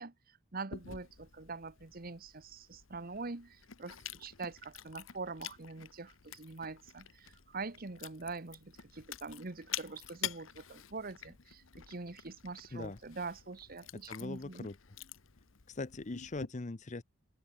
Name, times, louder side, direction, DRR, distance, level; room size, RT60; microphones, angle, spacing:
voice 1, 0.0-14.7, right 3 dB, 50° right, 1.3 m, -44 dB
Chewing mastication, 0.7-16.5, left 10 dB, 85° left, 1.2 m, -48 dB
voice 2, 14.1-14.7 15.7-17.0, left 2 dB, 40° left, 0.7 m, -40 dB
open air
head